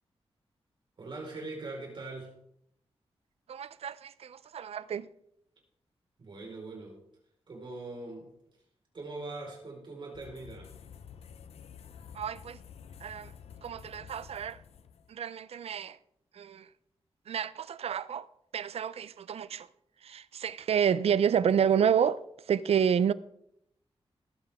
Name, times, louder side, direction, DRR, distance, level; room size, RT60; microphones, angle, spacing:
voice 1, 1.0-2.3 6.2-7.0 7.5-8.3 8.9-10.7, right 3 dB, 50° right, 4.5 m, -41 dB
voice 2, 3.5-5.1 12.1-12.6 13.0-13.3 13.6-14.6 15.1-16.0 16.4-16.7 17.3-18.3 18.5-19.7 20.0-22.2 22.5-23.1, right 8 dB, 80° right, 0.5 m, -29 dB
sound 1, 10.1-15.1, left 7 dB, 85° left, 0.7 m, -50 dB
19.0 x 8.9 x 3.6 m
wide cardioid pair, 165°, 10 cm